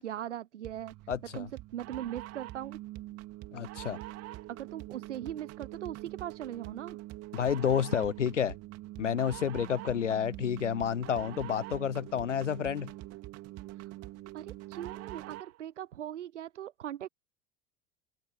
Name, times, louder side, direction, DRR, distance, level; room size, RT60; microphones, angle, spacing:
voice 1, 0.0-0.9 1.3-2.8 4.5-7.0 13.7-13.9 14.3-17.1, right 11 dB, 75° right, 0.7 m, -40 dB
sound 1, 0.6-15.6, right 17 dB, 45° right, 2.7 m, -44 dB
voice 2, 1.1-1.5 3.5-4.0 7.3-8.5 9.0-12.9, left 8 dB, 85° left, 0.7 m, -30 dB
figure-of-eight pair, 80°, 36 cm